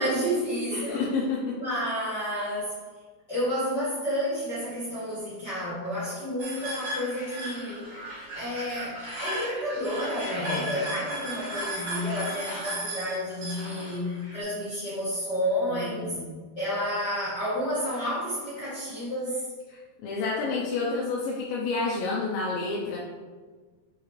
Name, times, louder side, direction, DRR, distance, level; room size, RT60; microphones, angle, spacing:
voice 1, 0.0-1.0 1.5-2.8 3.3-7.8 8.3-16.2 16.5-19.5, equal, 55° left, -11 dB, 1.1 m, -30 dB
voice 2, 0.7-1.6 10.4-10.7 15.7-16.3 19.7-23.0, left 3 dB, 75° left, -3 dB, 2.2 m, -30 dB
sound 1, 6.4-14.4, right 1 dB, 45° right, 1.6 m, -36 dB
6.6 x 4.7 x 3.2 m, 1.5 s
omnidirectional pair, 4.7 m